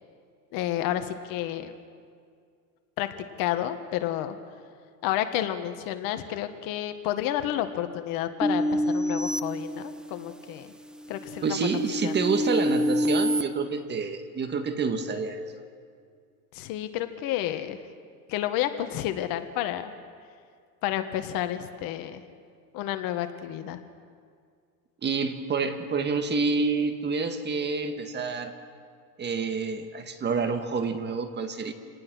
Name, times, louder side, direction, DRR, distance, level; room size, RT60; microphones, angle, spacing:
voice 1, 0.5-1.8 3.0-3.1 3.4-4.4 5.0-10.7 11.1-12.1 16.5-17.8 18.3-19.9 20.8-22.2 22.7-23.8, left 12 dB, 45° left, 9 dB, 1.6 m, -30 dB
sound 1, 8.4-10.4 10.9-13.4, equal, ahead, 0.7 m, -27 dB
voice 2, 11.4-15.5 25.0-28.6 29.2-31.7, right 4 dB, 20° right, 7 dB, 1.8 m, -28 dB
27.5 x 19.0 x 6.3 m, 2.2 s
supercardioid pair, 120°, 46 cm